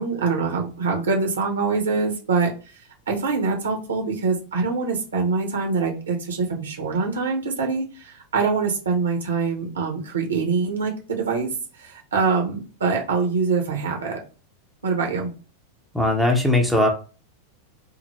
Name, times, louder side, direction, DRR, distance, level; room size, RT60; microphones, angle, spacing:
voice 1, 0.0-2.5 3.1-11.5 11.8-14.2 14.8-15.3, right 4 dB, 70° right, 2 dB, 1.0 m, -24 dB
voice 2, 15.9-16.9, left 1 dB, ahead, 2 dB, 0.8 m, -19 dB
3.8 x 2.1 x 2.9 m, 0.35 s
figure-of-eight pair, 90°, 0 cm